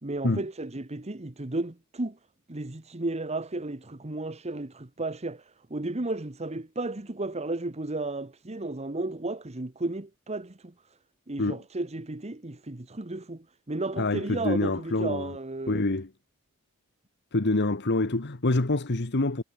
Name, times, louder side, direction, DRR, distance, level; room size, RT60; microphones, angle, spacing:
voice 1, 0.0-2.2 2.5-10.7 11.3-15.8, right 2 dB, 30° right, 1.2 m, -33 dB
voice 2, 14.0-15.4 15.7-16.1 17.3-19.4, left 2 dB, 50° left, 1.3 m, -26 dB
head